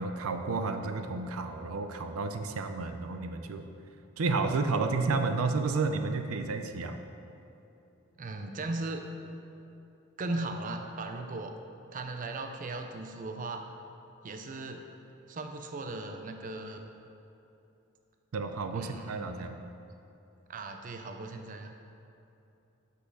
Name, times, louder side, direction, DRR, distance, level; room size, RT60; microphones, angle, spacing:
voice 1, 0.0-3.6 4.2-7.0 18.3-19.7, right 3 dB, 90° right, 7 dB, 0.5 m, -31 dB
voice 2, 8.2-9.0 10.2-11.5 11.9-13.6 14.2-14.9 15.3-16.8 18.7-19.6 20.5-21.7, right 2 dB, 40° right, 5 dB, 0.5 m, -37 dB
6.3 x 5.6 x 6.0 m, 2.8 s
head